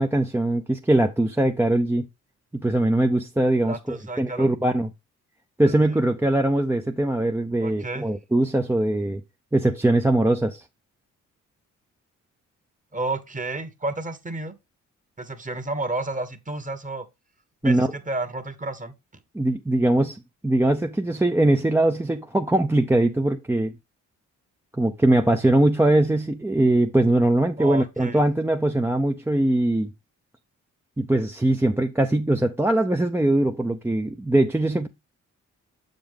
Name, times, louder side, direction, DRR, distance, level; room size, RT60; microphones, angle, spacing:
voice 1, 0.0-2.1 2.5-4.9 5.6-9.2 9.5-10.6 17.6-17.9 19.3-23.7 24.8-29.9 31.0-34.9, right 1 dB, 5° right, 0.6 m, -21 dB
voice 2, 3.6-4.5 5.7-6.0 7.6-8.1 12.9-14.5 15.2-17.1 17.6-18.9 27.6-28.2, right 2 dB, 25° right, 1.3 m, -31 dB
7.0 x 5.3 x 3.6 m
cardioid pair, 60°, 32 cm